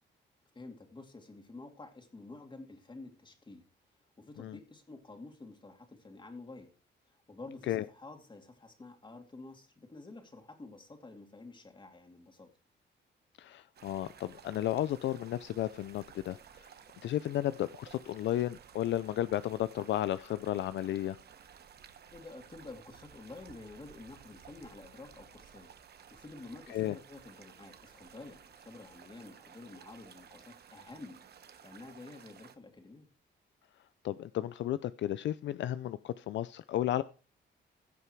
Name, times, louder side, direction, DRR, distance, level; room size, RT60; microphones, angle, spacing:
voice 1, 0.5-3.6 4.2-6.7 7.1-12.5 22.1-25.7 26.1-31.2 31.6-33.1, left 3 dB, 25° left, 2.8 m, -50 dB
voice 2, 13.4-16.7 17.0-21.2 26.7-26.9 34.0-37.0, left 12 dB, 70° left, 0.5 m, -33 dB
sound 1, 13.7-32.6, right 7 dB, 55° right, 1.3 m, -56 dB
16.0 x 5.6 x 4.6 m
cardioid pair, 90°, 20 cm